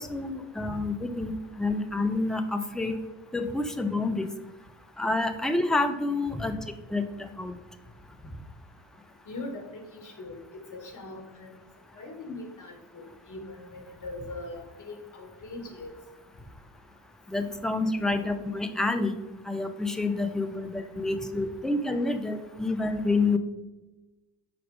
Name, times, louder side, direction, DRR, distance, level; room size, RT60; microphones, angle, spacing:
voice 1, 0.0-2.9 3.3-4.3 5.0-6.6 6.9-7.6 17.3-19.2 19.5-23.4, left 2 dB, ahead, 7 dB, 0.5 m, -28 dB
voice 2, 9.3-10.3 10.7-11.6 11.9-15.9, left 2 dB, 40° left, 3 dB, 1.7 m, -40 dB
6.3 x 4.7 x 3.4 m, 1.1 s
hypercardioid pair, 50°, 46 cm